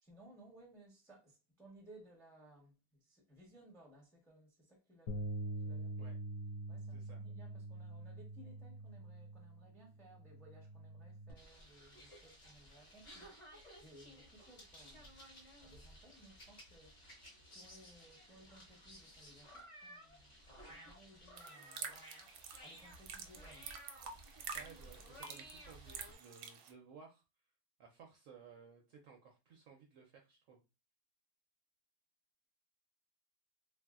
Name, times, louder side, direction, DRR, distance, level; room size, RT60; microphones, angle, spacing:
voice 1, 0.0-6.1 6.7-15.3 15.6-20.3 20.6-21.9 22.6-23.7 24.6-24.7, right 1 dB, 5° left, 0.4 m, -61 dB
Bass guitar, 5.1-11.3, right 2 dB, 75° left, 1.0 m, -45 dB
voice 2, 6.9-7.2 24.5-27.2 27.8-30.6, right 6 dB, 70° right, 0.8 m, -58 dB
sound 1, 11.3-26.1, equal, 35° left, 0.8 m, -56 dB
sound 2, 21.4-26.7, right 6 dB, 85° right, 1.2 m, -49 dB
3.2 x 2.6 x 2.3 m
omnidirectional pair, 1.8 m